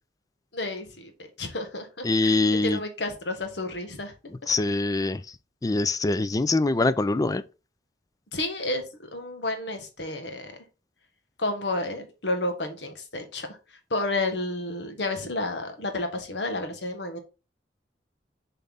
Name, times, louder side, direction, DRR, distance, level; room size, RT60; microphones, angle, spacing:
voice 1, 0.5-1.1 1.4-4.1 8.3-8.8 9.1-10.5 11.4-13.6 13.9-17.2, left 2 dB, 80° left, 1.5 m, -31 dB
voice 2, 2.0-2.8 4.5-5.2 5.6-7.4, left 2 dB, 20° left, 0.4 m, -23 dB
7.0 x 4.2 x 4.0 m
head